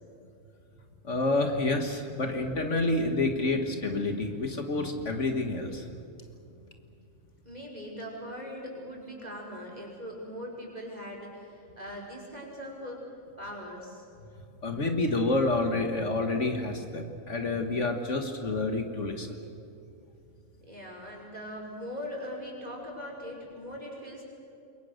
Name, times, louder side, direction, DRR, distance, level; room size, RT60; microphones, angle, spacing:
voice 1, 1.0-5.9 14.6-19.4, left 2 dB, 60° left, 5 dB, 2.0 m, -28 dB
voice 2, 7.4-14.1 20.6-24.2, equal, 30° right, -1 dB, 5.6 m, -41 dB
28.0 x 23.0 x 6.6 m, 2.7 s
omnidirectional pair, 1.4 m